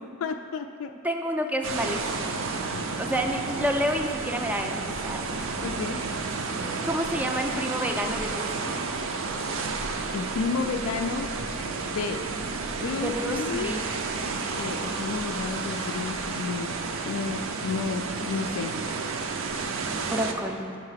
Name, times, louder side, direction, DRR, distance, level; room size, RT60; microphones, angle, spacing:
voice 1, 0.0-0.9 1.8-1.9 2.7-3.0 5.4-6.0 10.1-11.3 11.8-12.2 12.8-13.8 14.5-16.7 17.0-18.8, left 5 dB, 80° left, 6 dB, 0.3 m, -32 dB
voice 2, 1.0-2.4 3.0-5.2 6.8-8.7 12.9-13.8 20.1-20.8, equal, 5° right, 4 dB, 0.3 m, -29 dB
sound 1, 1.6-20.3, right 4 dB, 65° right, 0.5 m, -31 dB
5.6 x 5.3 x 5.6 m, 2.5 s
head